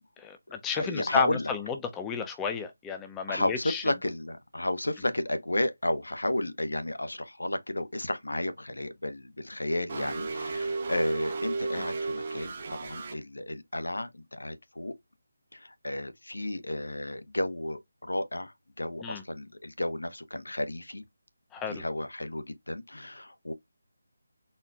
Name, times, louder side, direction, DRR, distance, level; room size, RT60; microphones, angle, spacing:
voice 1, 0.2-3.8 11.7-11.8 19.0-19.2 21.5-21.8, left 6 dB, 10° left, 0.6 m, -32 dB
voice 2, 0.8-1.5 3.3-14.9 15.5-21.0 21.7-23.5, left 1 dB, 80° left, 0.9 m, -32 dB
sound 1, 9.9-13.1, right 3 dB, 35° right, 1.0 m, -33 dB
4.3 x 3.2 x 2.4 m
figure-of-eight pair, 155°, 0 cm